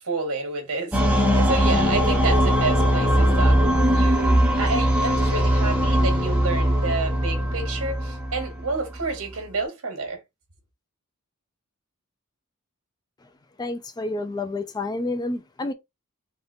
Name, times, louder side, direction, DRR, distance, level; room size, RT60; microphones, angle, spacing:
voice 1, 0.0-3.6 3.9-10.2, right 3 dB, 75° right, 1.3 m, -29 dB
sound 1, 0.9-9.1, equal, 5° right, 0.7 m, -20 dB
voice 2, 13.6-15.7, left 2 dB, 20° left, 0.3 m, -29 dB
3.6 x 2.6 x 2.7 m
head